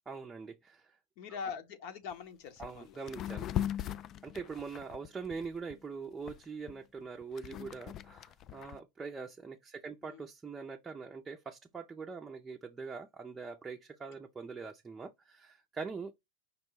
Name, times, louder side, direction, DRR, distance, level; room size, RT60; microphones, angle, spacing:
voice 1, 0.1-1.0 2.6-3.8 4.2-16.1, right 5 dB, 15° right, 0.5 m, -43 dB
voice 2, 1.2-3.0 10.0-10.2, left 6 dB, 60° left, 1.0 m, -43 dB
sound 1, 2.1-2.2 2.6-2.8 3.1-5.8 6.3-8.8, left 11 dB, 40° left, 0.3 m, -39 dB
5.3 x 2.2 x 4.6 m
hypercardioid pair, 100°, 0 cm